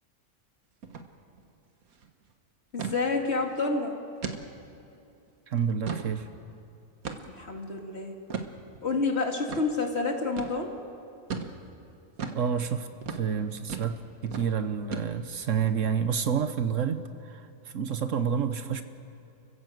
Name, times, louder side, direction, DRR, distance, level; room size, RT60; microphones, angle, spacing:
sound 1, 0.8-1.1 1.4-1.5 1.8-2.1 2.8-3.0 3.5-3.6 4.2-4.4 4.9-5.0 5.6-6.1 7.0-7.4 8.3-8.5 9.5-9.6 10.4-10.6 11.3-11.5 12.2-12.4 13.0-13.2 13.7-14.0 14.3-14.5 14.9-15.4, right 5 dB, 85° right, 1.8 m, -35 dB
voice 1, 2.7-3.9 7.3-8.1 8.8-10.7, left 3 dB, 50° left, 2 dB, 2.4 m, -29 dB
voice 2, 5.5-6.3 12.3-18.8, right 7 dB, 65° right, 10 dB, 1.2 m, -29 dB
30.0 x 15.0 x 7.8 m, 2.7 s
omnidirectional pair, 1.5 m